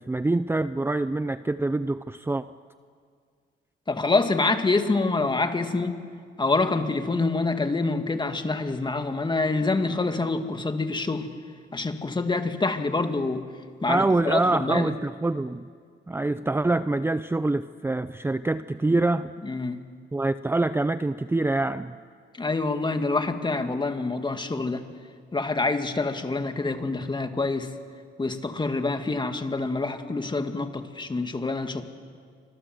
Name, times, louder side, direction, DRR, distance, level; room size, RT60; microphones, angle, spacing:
voice 1, 0.0-2.4 13.9-15.7 16.1-19.3 20.1-21.9, right 2 dB, 10° right, 12 dB, 0.7 m, -25 dB
voice 2, 3.9-6.0 6.4-11.3 11.7-13.4 13.8-14.9 19.4-19.8 22.4-24.9 25.3-27.7 28.2-31.8, left 3 dB, 25° left, 7 dB, 2.3 m, -26 dB
29.5 x 25.5 x 7.9 m, 2.1 s
cardioid pair, 90°, 20 cm